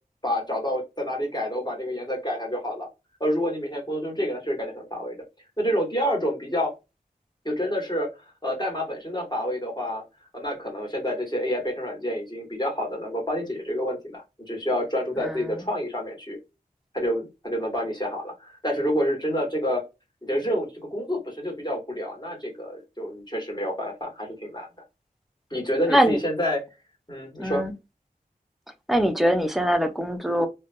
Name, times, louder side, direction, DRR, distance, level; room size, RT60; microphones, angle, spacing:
voice 1, 0.2-2.9 3.2-5.2 5.6-6.7 7.4-8.1 8.4-10.0 10.3-16.4 16.9-19.8 20.2-24.7 25.5-26.6 27.1-27.6, equal, 30° left, 1.4 m, -28 dB
voice 2, 27.4-27.7 28.9-30.5, equal, ahead, 0.6 m, -22 dB
2.7 x 2.2 x 2.5 m
wide cardioid pair, 55°, 16 cm